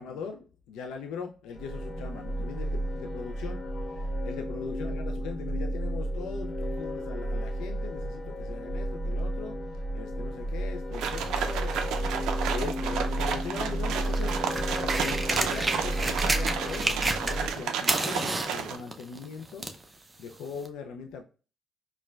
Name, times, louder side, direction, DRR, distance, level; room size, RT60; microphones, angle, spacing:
voice 1, 0.0-21.2, left 6 dB, 90° left, 0.3 m, -40 dB
sound 1, 1.5-17.5, right 1 dB, 25° left, 1.2 m, -32 dB
sound 2, 10.9-18.8, right 7 dB, 85° right, 0.4 m, -32 dB
sound 3, 14.0-17.6 17.8-19.8 20.7-20.8, right 2 dB, 20° right, 0.5 m, -30 dB
4.3 x 2.1 x 2.3 m
cardioid pair, 90°, 0 cm